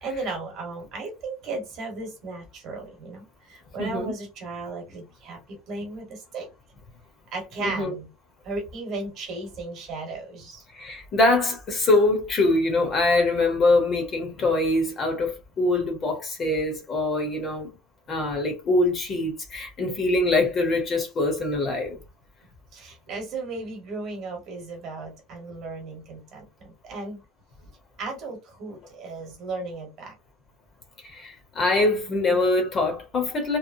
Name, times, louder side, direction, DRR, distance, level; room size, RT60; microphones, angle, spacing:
voice 1, 0.0-6.5 7.3-8.1 8.4-10.6 22.7-27.2 28.0-30.1, right 3 dB, 40° right, 1.1 m, -35 dB
voice 2, 3.8-4.1 7.6-7.9 10.7-17.7 18.1-22.0 31.0-33.6, left 2 dB, 25° left, 0.7 m, -23 dB
2.9 x 2.0 x 2.5 m
cardioid pair, 165°, 0 cm